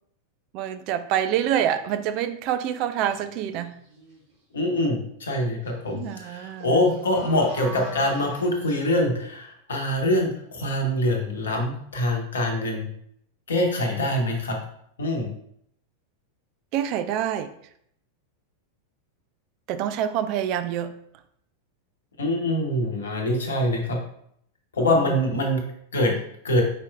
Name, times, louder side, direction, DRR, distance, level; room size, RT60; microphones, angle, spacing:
voice 1, 0.5-3.7 5.9-6.9 16.7-17.5 19.7-20.9 24.8-25.2, right 10 dB, 40° right, 10 dB, 0.3 m, -27 dB
sound 1, 3.0-3.3 3.7-4.3 5.7-5.8 6.0-8.8, right 2 dB, 60° right, 1.9 m, -41 dB
voice 2, 4.5-12.9 13.5-14.6 15.0-15.3 22.2-24.0 24.7-25.6 25.9-26.1 26.4-26.6, left 1 dB, 65° left, 1 dB, 0.9 m, -24 dB
5.0 x 4.4 x 2.3 m, 0.69 s
figure-of-eight pair, 90°, 0 cm